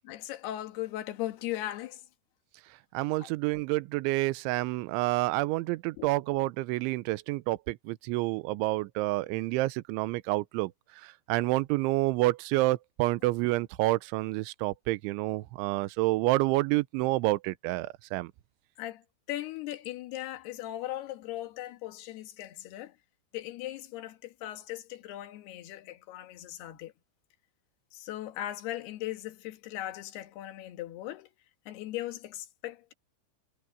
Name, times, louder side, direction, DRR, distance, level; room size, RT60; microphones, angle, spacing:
voice 1, 0.0-2.0 3.2-3.3 6.0-6.1 18.8-19.0 19.3-22.9 23.3-26.9 27.9-31.3 31.7-32.9, left 14 dB, 65° left, 3.2 m, -38 dB
voice 2, 2.9-10.7 11.3-18.3, right 19 dB, 80° right, 3.0 m, -28 dB
omnidirectional pair, 5.9 m